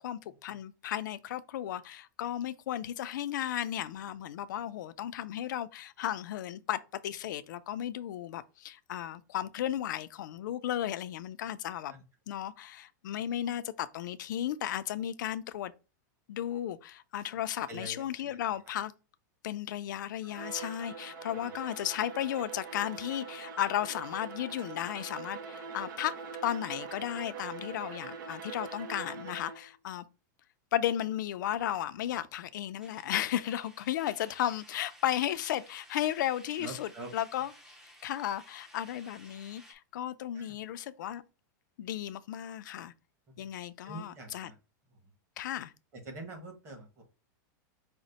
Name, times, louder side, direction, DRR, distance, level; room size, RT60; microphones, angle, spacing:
voice 1, 0.0-11.9 12.3-15.7 16.3-18.9 19.4-26.1 26.4-30.0 30.7-37.5 38.0-41.2 41.8-42.9 43.4-44.5 45.4-45.7, left 11 dB, 75° left, 0.4 m, -34 dB
voice 2, 17.7-18.4 18.6-18.7 21.3-21.5 36.6-37.1 40.3-40.6 43.4-43.5 43.8-44.6 44.9-45.1 45.9-47.1, right 2 dB, 25° right, 1.2 m, -45 dB
Bowed string instrument, 20.3-29.8, right 5 dB, 80° right, 0.7 m, -43 dB
sound 1, 32.8-39.7, equal, 5° right, 0.5 m, -56 dB
5.1 x 2.1 x 3.9 m
supercardioid pair, 170°, 10 cm